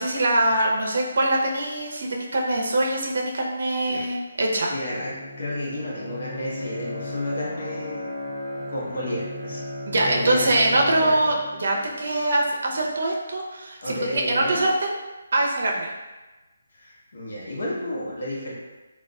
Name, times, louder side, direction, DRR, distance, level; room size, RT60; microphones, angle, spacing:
voice 1, 0.0-4.7 9.9-14.9 15.3-15.9, right 1 dB, 60° right, 0 dB, 0.6 m, -23 dB
voice 2, 4.7-5.1 5.4-8.1 8.7-9.6 10.1-11.3 13.8-14.6 16.7-18.5, left 1 dB, 65° left, -5 dB, 0.9 m, -31 dB
Bowed string instrument, 4.7-12.5, left 1 dB, 5° left, 0.9 m, -36 dB
3.9 x 2.3 x 2.3 m, 1.1 s
hypercardioid pair, 165°, 0 cm